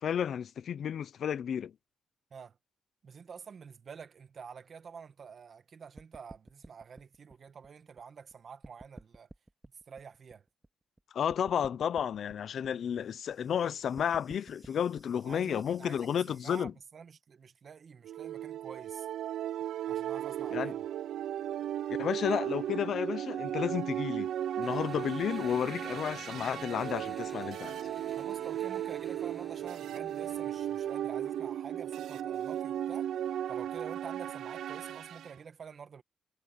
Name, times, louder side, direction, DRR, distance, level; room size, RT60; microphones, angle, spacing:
voice 1, 0.0-1.7 11.1-16.7 20.5-20.7 22.0-24.3 24.6-27.8, left 8 dB, 60° left, 0.8 m, -32 dB
voice 2, 3.0-9.3 9.9-10.4 15.2-16.1 16.4-19.1 19.9-20.8 28.1-33.1 33.5-36.0, right 6 dB, 45° right, 1.7 m, -48 dB
sound 1, 6.0-8.3 8.6-11.0 11.3-16.7, right 2 dB, 15° right, 2.2 m, -53 dB
sound 2, 18.0-35.3, right 11 dB, 80° right, 0.5 m, -36 dB
Engine, 24.6-31.1, left 2 dB, 10° left, 7.8 m, -53 dB
cardioid pair, 105°, 0 cm